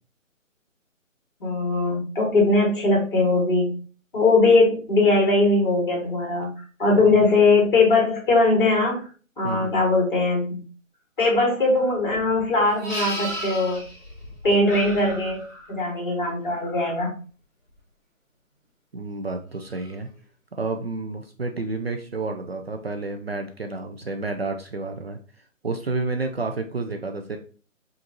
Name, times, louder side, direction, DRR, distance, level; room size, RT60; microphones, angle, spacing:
voice 1, 1.4-3.8 4.1-6.5 6.8-9.0 9.4-10.6 11.2-13.8 14.4-15.4 15.7-17.1, left 2 dB, 40° left, -2 dB, 2.0 m, -20 dB
voice 2, 9.4-9.8 18.9-20.1 20.6-25.2 25.6-27.4, right 3 dB, 50° right, 5 dB, 0.5 m, -30 dB
Livestock farm animals working animals, 12.1-15.4 19.7-19.9, equal, 5° right, 1.4 m, -36 dB
sound 1, 12.9-14.2 14.7-15.9, equal, 15° left, 0.8 m, -37 dB
5.1 x 2.6 x 2.9 m, 0.38 s
figure-of-eight pair, 160°, 40 cm